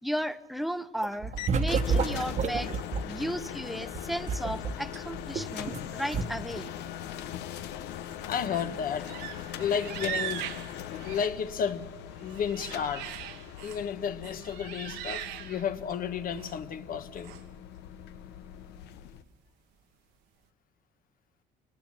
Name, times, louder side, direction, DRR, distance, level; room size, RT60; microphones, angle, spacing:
voice 1, 0.0-2.7 3.0-6.7, equal, ahead, 0.9 m, -34 dB
sound 1, 1.0-3.1 3.9-5.8 6.1-6.2, right 5 dB, 45° right, 1.2 m, -29 dB
sound 2, 1.4-19.2, left 10 dB, 90° left, 1.0 m, -41 dB
sound 3, 8.1-8.7 9.0-11.7 12.1-13.9 14.2-16.0 16.3-16.6 17.2-17.4, right 11 dB, 90° right, 1.4 m, -40 dB
voice 2, 8.2-9.1 9.6-10.5 11.0-11.8 12.2-17.4, left 7 dB, 55° left, 1.4 m, -32 dB
24.5 x 19.0 x 7.5 m
cardioid pair, 110°, 17 cm